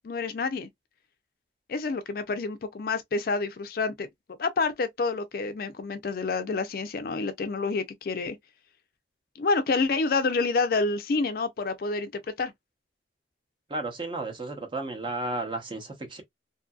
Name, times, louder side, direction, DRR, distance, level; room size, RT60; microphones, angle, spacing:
voice 1, 0.0-0.7 1.7-4.1 4.4-8.4 9.4-12.5, left 4 dB, 50° left, 0.4 m, -28 dB
voice 2, 13.7-16.2, right 2 dB, 25° right, 0.7 m, -33 dB
2.7 x 2.5 x 2.3 m
head